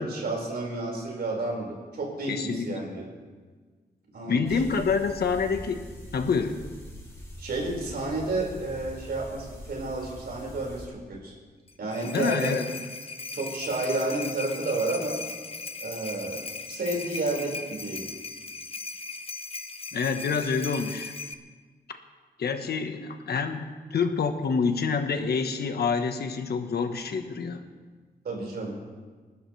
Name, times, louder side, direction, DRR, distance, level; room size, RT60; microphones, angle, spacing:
voice 1, 0.0-3.1 4.1-4.6 7.4-11.3 11.8-12.6 13.3-15.2 15.8-18.0 28.2-28.8, right 2 dB, 75° right, -2 dB, 5.2 m, -31 dB
voice 2, 2.3-2.9 4.3-5.8 6.1-6.6 12.0-12.8 19.9-21.1 21.9-22.0 22.4-27.6, left 5 dB, 75° left, 7 dB, 1.3 m, -27 dB
sound 1, 4.4-10.9, equal, 20° left, 5.4 m, -43 dB
sound 2, 11.7-21.3, left 4 dB, 35° left, 0.9 m, -38 dB
29.5 x 12.5 x 3.3 m, 1.4 s
wide cardioid pair, 100°, 17 cm